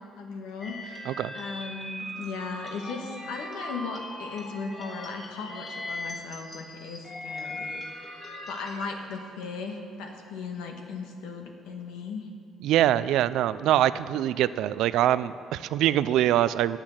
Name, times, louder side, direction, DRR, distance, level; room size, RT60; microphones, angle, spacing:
voice 1, 0.0-12.3, left 4 dB, 90° left, 3 dB, 1.5 m, -37 dB
sound 1, 0.6-8.9, left 1 dB, 30° left, 3.2 m, -39 dB
voice 2, 12.6-16.8, right 12 dB, 75° right, 16 dB, 0.4 m, -24 dB
10.0 x 8.9 x 7.2 m, 2.4 s
cardioid pair, 90°, 0 cm